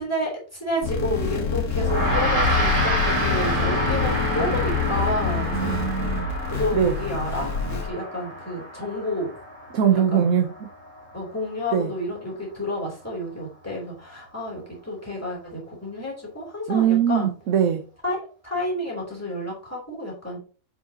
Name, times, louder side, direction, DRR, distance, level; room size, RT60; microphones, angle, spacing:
voice 1, 0.0-6.1 6.5-9.3 10.1-10.3 11.1-17.3 18.0-20.4, left 1 dB, 10° left, 3.1 m, -30 dB
sound 1, 0.8-7.9, left 4 dB, 85° left, 1.8 m, -26 dB
Gong, 1.8-11.4, equal, 25° right, 3.1 m, -29 dB
voice 2, 5.5-6.3 6.7-7.0 9.7-10.7 11.7-11.9 16.7-17.8, right 8 dB, 70° right, 1.2 m, -22 dB
7.5 x 5.9 x 2.8 m
omnidirectional pair, 1.5 m